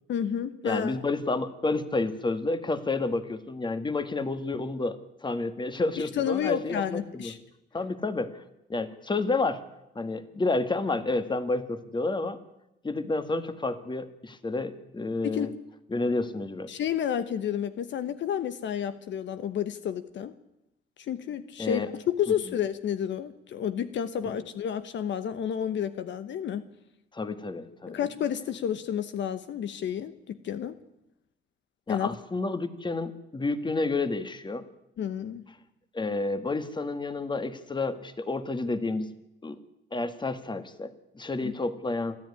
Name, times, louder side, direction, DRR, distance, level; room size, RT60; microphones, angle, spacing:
voice 1, 0.1-1.0 6.0-7.4 15.2-15.5 16.7-20.3 21.0-26.6 27.9-30.8 31.9-32.1 35.0-35.4 41.4-41.5, left 9 dB, 65° left, 12 dB, 1.0 m, -30 dB
voice 2, 0.6-7.3 7.7-8.4 8.7-9.6 10.0-12.4 12.8-15.5 15.9-16.7 21.6-21.9 27.1-28.0 31.9-34.7 35.9-39.1 39.4-39.6 39.9-42.2, left 3 dB, 25° left, 11 dB, 1.8 m, -30 dB
28.0 x 10.5 x 9.8 m, 0.88 s
cardioid pair, 90°, 20 cm